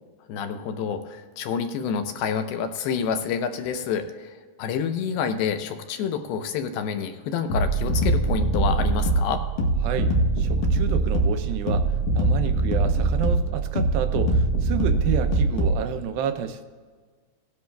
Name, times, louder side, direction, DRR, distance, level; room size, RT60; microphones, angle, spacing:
voice 1, 0.3-9.4, left 7 dB, 90° left, 8 dB, 2.7 m, -28 dB
sound 1, 7.5-15.8, right 2 dB, 70° left, 2.5 m, -22 dB
voice 2, 10.4-11.9 12.1-16.6, right 8 dB, 80° right, 7 dB, 2.3 m, -29 dB
17.5 x 10.0 x 2.3 m, 1.5 s
omnidirectional pair, 4.3 m